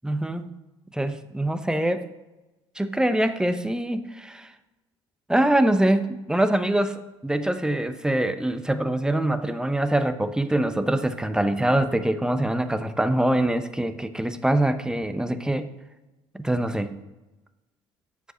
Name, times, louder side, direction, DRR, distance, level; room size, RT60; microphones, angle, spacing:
voice 1, 0.0-0.4 0.9-2.1 2.8-4.5 5.3-15.7 16.3-16.9, right 1 dB, 5° right, 10 dB, 0.9 m, -24 dB
8.3 x 7.8 x 6.3 m, 1.1 s
hypercardioid pair, 60°, 15 cm